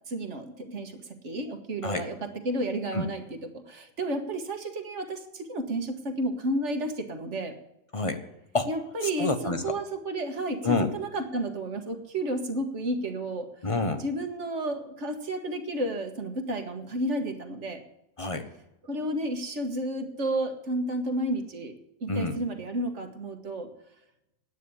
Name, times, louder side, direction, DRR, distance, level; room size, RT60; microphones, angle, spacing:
voice 1, 0.1-7.5 8.7-13.5 14.0-17.8 18.9-21.7 22.0-23.7, right 1 dB, 60° right, 6 dB, 1.7 m, -32 dB
voice 2, 7.9-8.2 8.5-8.7 9.2-9.8 10.6-10.9 13.6-14.0 18.2-18.5 22.1-22.4, left 3 dB, 25° left, 8 dB, 1.0 m, -28 dB
9.7 x 9.2 x 8.5 m, 0.88 s
omnidirectional pair, 1.4 m